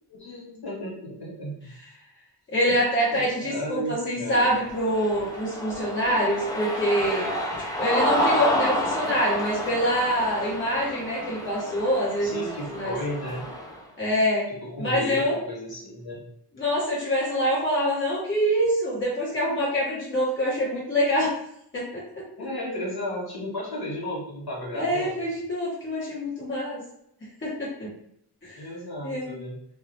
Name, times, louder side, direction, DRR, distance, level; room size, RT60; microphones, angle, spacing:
voice 1, 0.1-1.6 2.7-4.5 12.2-13.5 14.5-16.2 22.4-25.3 28.5-29.6, left 1 dB, 60° left, -5 dB, 1.2 m, -34 dB
voice 2, 2.5-7.3 7.8-12.4 12.7-12.9 14.0-14.5 14.8-15.4 16.6-21.4 21.7-22.0 24.7-26.8 27.4-27.9 28.4-28.7 29.0-29.3, equal, 30° left, -7 dB, 0.9 m, -25 dB
Cheering, 4.5-13.8, equal, 10° left, 0.4 m, -29 dB
2.3 x 2.0 x 2.7 m, 0.73 s
wide cardioid pair, 85°, 42 cm